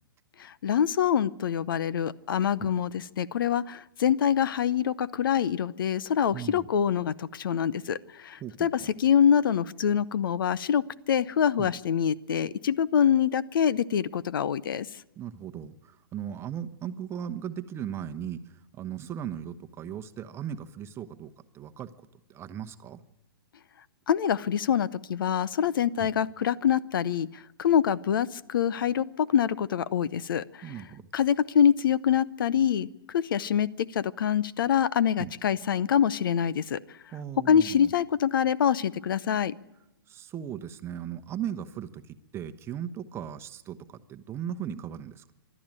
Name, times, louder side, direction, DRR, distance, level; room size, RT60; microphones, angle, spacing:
voice 1, 0.4-10.8 11.1-14.9 24.1-27.3 27.6-30.7 31.1-33.7 33.9-36.8 37.5-39.5, left 8 dB, 65° left, 19 dB, 0.7 m, -25 dB
voice 2, 6.3-6.7 8.4-8.7 11.6-11.7 15.2-18.4 18.8-21.9 22.3-23.0 26.0-26.1 30.6-31.0 35.2-35.3 37.1-37.9 40.1-45.3, right 9 dB, 20° right, 10 dB, 1.0 m, -37 dB
25.5 x 12.0 x 8.9 m, 0.94 s
hypercardioid pair, 125°, 12 cm